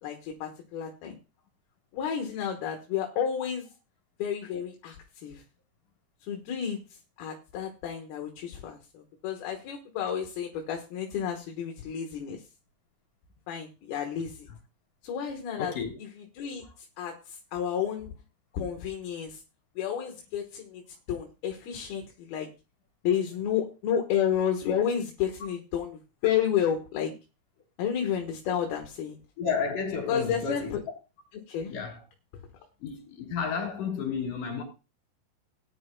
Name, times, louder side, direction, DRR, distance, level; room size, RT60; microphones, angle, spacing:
voice 1, 0.0-1.2 1.9-3.7 4.2-5.4 6.2-6.8 7.2-12.4 13.5-14.5 15.0-15.7 16.3-18.1 18.5-19.4 19.8-20.8 21.1-22.5 23.0-27.1 27.8-29.2 30.1-30.8 31.5-31.7, left 8 dB, 70° left, 3.0 m, -31 dB
voice 2, 15.6-16.0 16.6-16.7 29.4-30.9 31.7-32.0 32.8-34.6, left 5 dB, 50° left, 4.6 m, -32 dB
18.5 x 9.9 x 2.2 m
omnidirectional pair, 4.9 m